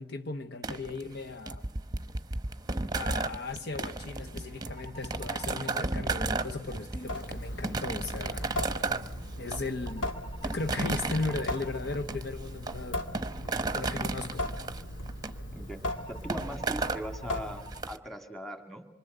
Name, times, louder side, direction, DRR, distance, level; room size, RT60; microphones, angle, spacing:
voice 1, 0.0-1.7 2.9-8.5 9.4-10.1 10.4-13.0 13.7-14.5, left 3 dB, 55° left, 1.0 m, -36 dB
sound 1, 0.6-18.0, right 3 dB, 20° right, 1.0 m, -35 dB
sound 2, 4.7-5.9 9.9-11.9 15.9-17.9, right 2 dB, 30° left, 2.7 m, -50 dB
Water tap faucet / Sink (filling or washing) / Drip, 7.0-17.9, left 1 dB, 75° left, 2.3 m, -38 dB
voice 2, 15.5-18.9, equal, ahead, 2.3 m, -40 dB
26.5 x 25.0 x 8.0 m
head